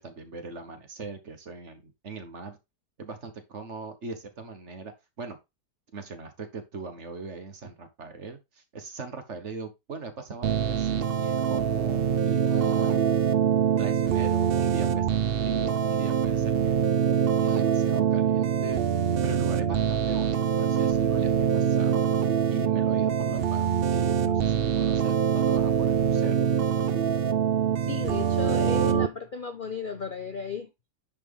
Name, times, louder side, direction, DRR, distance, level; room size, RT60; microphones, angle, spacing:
voice 1, 0.0-2.6 3.0-5.4 5.9-13.0 13.8-16.7 17.1-18.8 19.2-22.1 22.5-26.5, right 4 dB, 45° right, 1.5 m, -40 dB
sound 1, 10.4-29.1, right 8 dB, 60° right, 0.6 m, -24 dB
voice 2, 27.8-30.7, left 5 dB, 45° left, 0.7 m, -34 dB
10.5 x 4.4 x 3.5 m
omnidirectional pair, 1.8 m